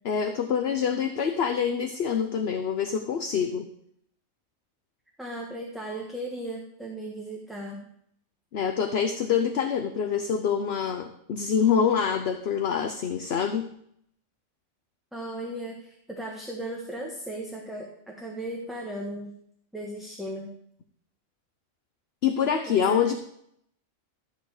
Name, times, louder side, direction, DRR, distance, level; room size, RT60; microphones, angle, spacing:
voice 1, 0.0-3.7 8.5-13.7 22.2-23.1, left 7 dB, 55° left, 7 dB, 0.9 m, -26 dB
voice 2, 5.2-7.8 15.1-19.3 19.7-20.5 22.7-23.1, right 1 dB, ahead, -1 dB, 1.3 m, -36 dB
13.5 x 4.8 x 7.8 m, 0.70 s
omnidirectional pair, 1.4 m